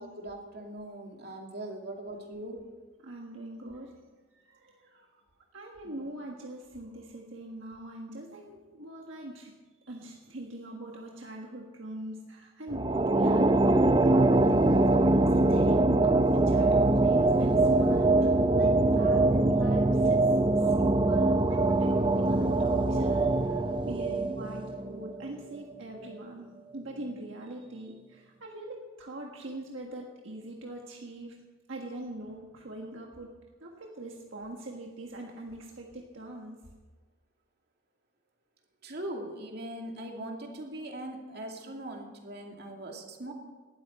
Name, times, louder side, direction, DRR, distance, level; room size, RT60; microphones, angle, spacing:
voice 1, 0.0-2.7 5.8-6.1 38.8-43.3, right 1 dB, 50° right, 1 dB, 2.5 m, -40 dB
voice 2, 3.0-4.1 4.6-5.1 5.5-9.5 9.8-14.5 14.9-31.4 31.7-36.7, right 1 dB, 70° right, 0 dB, 1.6 m, -42 dB
sound 1, 12.7-25.3, right 2 dB, 25° right, 0.6 m, -23 dB
18.5 x 13.0 x 4.4 m, 1.4 s
head